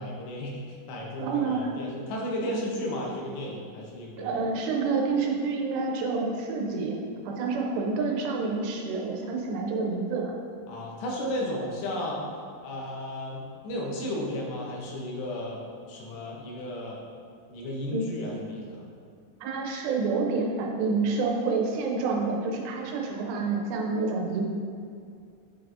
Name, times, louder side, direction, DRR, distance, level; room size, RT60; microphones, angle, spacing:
voice 1, 0.0-4.3 10.7-12.2 12.6-17.0 17.5-18.9, left 1 dB, 90° left, -2 dB, 3.1 m, -34 dB
voice 2, 1.2-1.7 4.2-10.3 17.9-18.1 19.4-24.4, right 4 dB, 85° right, 0 dB, 2.9 m, -28 dB
7.8 x 4.7 x 2.6 m, 2.3 s
omnidirectional pair, 4.8 m